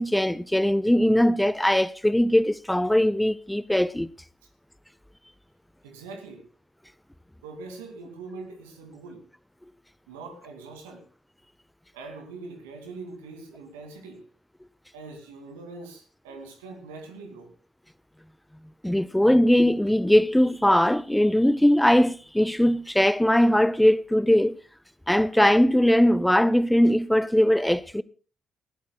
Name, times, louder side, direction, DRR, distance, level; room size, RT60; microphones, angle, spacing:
voice 1, 0.0-4.1 18.8-24.5 25.1-28.0, equal, 5° left, 0.5 m, -20 dB
voice 2, 5.8-6.5 7.4-9.2 10.1-11.1 11.9-14.2 14.9-17.5, right 3 dB, 80° right, 2.3 m, -42 dB
20.5 x 15.0 x 2.3 m
hypercardioid pair, 40°, 0 cm